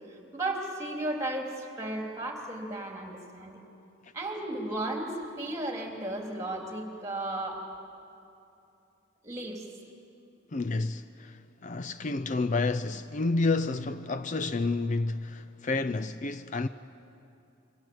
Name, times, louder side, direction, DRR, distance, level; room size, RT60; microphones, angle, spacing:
voice 1, 0.1-3.6 4.1-7.6 9.2-9.6, right 1 dB, 15° right, 3.6 m, -34 dB
voice 2, 10.5-16.7, left 3 dB, 40° left, 0.5 m, -30 dB
26.0 x 25.0 x 7.9 m
head